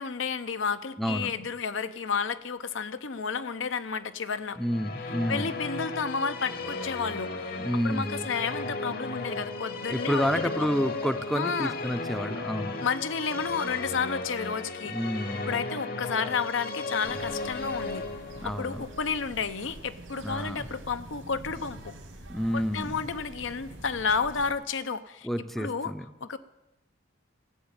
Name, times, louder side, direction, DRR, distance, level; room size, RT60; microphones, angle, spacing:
voice 1, 0.0-4.6 5.3-10.8 11.3-11.7 12.8-14.9 15.5-18.1 18.4-21.9 22.5-25.3 25.6-25.9 26.2-26.4, left 5 dB, 80° left, 11 dB, 0.7 m, -31 dB
voice 2, 1.0-1.4 4.6-5.5 7.6-8.3 9.9-12.9 14.9-15.6 18.4-18.8 20.2-20.7 22.3-23.0 25.2-26.0, equal, ahead, 10 dB, 0.5 m, -30 dB
Musical instrument, 4.5-19.9, left 3 dB, 50° left, 1.1 m, -36 dB
sound 1, 17.0-24.5, right 1 dB, 85° right, 2.6 m, -45 dB
14.5 x 7.6 x 8.8 m, 0.95 s
head